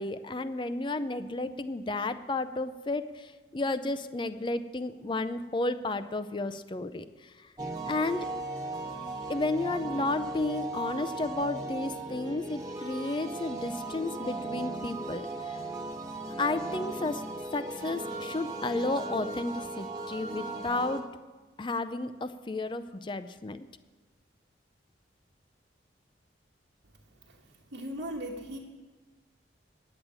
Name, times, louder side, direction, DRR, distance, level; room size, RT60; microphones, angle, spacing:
voice 1, 0.0-7.5 7.8-8.3 9.3-15.7 16.4-17.2 17.5-21.1 21.6-23.7, left 2 dB, 25° left, 11 dB, 0.4 m, -32 dB
sound 1, 7.6-21.0, right 2 dB, 20° right, 1.2 m, -37 dB
voice 2, 27.7-28.6, equal, 85° right, -2 dB, 1.3 m, -37 dB
10.5 x 7.9 x 8.8 m, 1.3 s
head